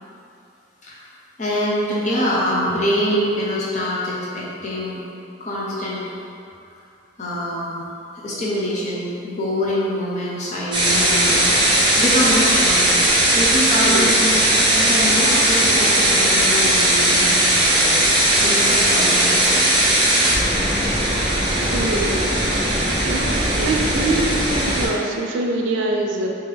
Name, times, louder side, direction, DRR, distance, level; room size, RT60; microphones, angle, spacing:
voice 1, 1.4-5.0 5.4-6.0 7.2-7.8 8.2-13.0 13.3-14.4 14.7-19.7, equal, 40° left, -6 dB, 0.8 m, -24 dB
sound 1, 10.7-24.9, right 1 dB, 25° right, 0.7 m, -18 dB
voice 2, 13.8-14.2 21.7-22.3 23.0-26.3, right 2 dB, 80° right, 1 dB, 0.4 m, -24 dB
3.7 x 2.9 x 3.4 m, 2.6 s
head